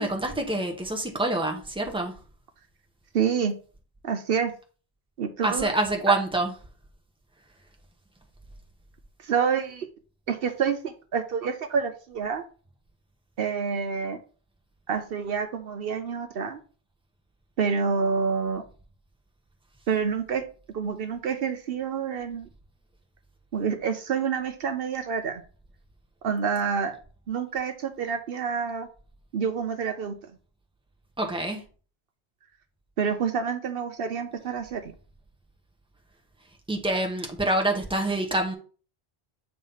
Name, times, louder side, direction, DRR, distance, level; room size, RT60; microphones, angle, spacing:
voice 1, 0.0-2.2 5.4-6.5 31.2-31.6 36.7-38.5, right 2 dB, 5° right, 2 dB, 1.1 m, -26 dB
voice 2, 3.1-3.5 4.0-4.5 5.2-5.7 9.2-9.9 10.3-12.4 13.4-14.2 14.9-16.6 17.6-18.7 19.9-20.4 20.7-22.5 23.5-25.4 26.2-27.0 27.3-28.9 29.3-30.3 33.0-34.9, right 6 dB, 65° right, 7 dB, 0.9 m, -28 dB
7.4 x 3.1 x 5.5 m, 0.39 s
omnidirectional pair, 1.0 m